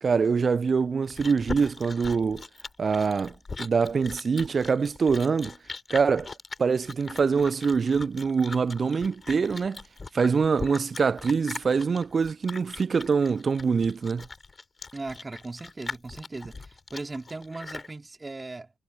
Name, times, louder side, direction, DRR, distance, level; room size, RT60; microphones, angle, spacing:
voice 1, 0.0-2.4 2.8-5.5 5.9-6.3 6.6-9.8 10.1-14.3, right 5 dB, 40° right, 0.6 m, -24 dB
Chewing mastication, 0.7-17.9, left 4 dB, 30° left, 5.2 m, -40 dB
voice 2, 14.9-18.7, right 3 dB, 25° right, 3.5 m, -38 dB
figure-of-eight pair, 40°, 0 cm